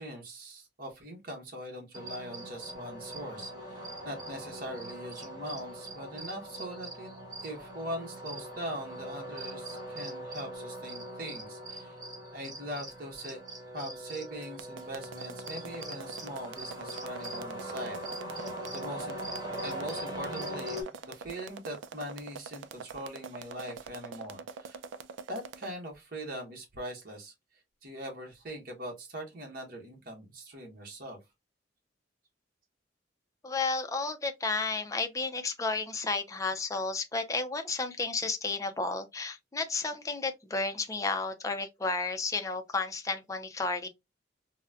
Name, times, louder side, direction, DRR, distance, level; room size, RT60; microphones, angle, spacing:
voice 1, 0.0-7.1 7.4-12.0 12.3-13.4 13.7-18.0 18.3-19.2 19.6-24.8 25.3-27.3 27.8-31.2, equal, 50° right, 1.0 m, -41 dB
sound 1, 1.9-20.8, right 1 dB, 25° right, 1.0 m, -41 dB
sound 2, 14.4-25.7, right 5 dB, 90° right, 0.4 m, -44 dB
voice 2, 33.4-43.9, left 3 dB, 20° left, 0.5 m, -32 dB
3.9 x 2.1 x 2.3 m
head